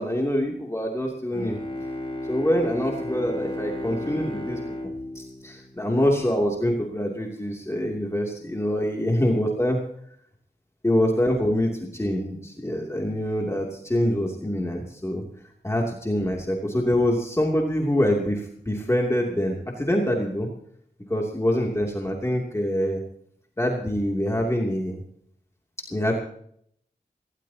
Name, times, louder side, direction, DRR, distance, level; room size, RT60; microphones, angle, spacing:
voice 1, 0.0-1.6 2.3-9.8 10.8-15.2 15.6-20.5 21.1-23.0 23.6-25.0 25.9-26.1, equal, 15° left, 0 dB, 2.7 m, -25 dB
Bowed string instrument, 1.3-6.3, left 1 dB, 30° left, 2.4 m, -33 dB
19.0 x 17.5 x 2.9 m, 0.66 s
wide cardioid pair, 85°, 17 cm